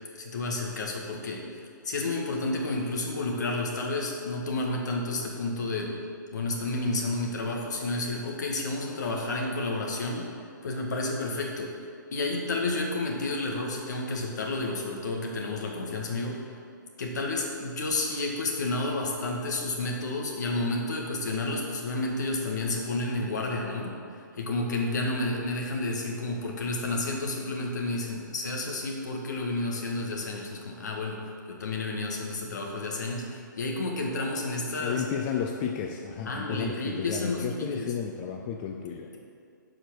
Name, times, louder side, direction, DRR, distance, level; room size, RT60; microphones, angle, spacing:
voice 1, 0.2-6.0 6.3-10.3 10.6-11.7 12.1-16.4 17.0-35.0 36.2-37.9, left 2 dB, 60° left, 0 dB, 1.8 m, -31 dB
voice 2, 34.8-39.2, left 7 dB, 30° left, 2 dB, 0.6 m, -32 dB
10.0 x 5.0 x 6.3 m, 2.3 s
figure-of-eight pair, 130°, 11 cm